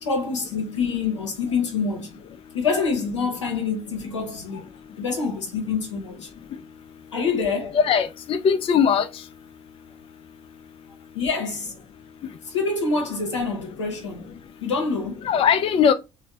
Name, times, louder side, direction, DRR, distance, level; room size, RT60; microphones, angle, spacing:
voice 1, 0.0-2.2 2.5-4.6 5.0-6.3 7.1-7.8 11.1-11.8 12.4-14.2 14.6-15.3, left 4 dB, 90° left, 0.7 m, -26 dB
voice 2, 7.7-9.1 15.2-15.9, left 7 dB, 40° left, 0.4 m, -19 dB
3.2 x 2.1 x 2.8 m
figure-of-eight pair, 50°, 15 cm